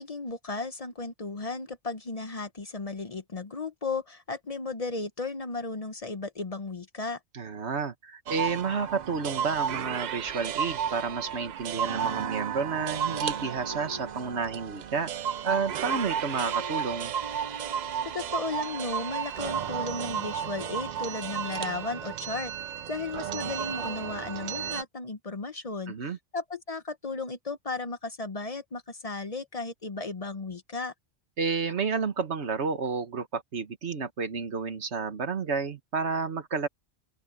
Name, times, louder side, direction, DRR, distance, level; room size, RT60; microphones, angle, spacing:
voice 1, 0.0-7.2 18.0-22.5 22.9-25.9 26.3-30.9, left 3 dB, 35° left, 0.8 m, -35 dB
voice 2, 7.3-15.1 15.4-17.1 25.9-26.2 31.4-36.7, right 5 dB, 85° right, 1.7 m, -31 dB
sound 1, 8.3-24.8, right 8 dB, 55° right, 0.5 m, -33 dB
sound 2, 8.9-11.5 11.7-19.9, right 1 dB, 35° right, 2.9 m, -47 dB
open air
omnidirectional pair, 1.1 m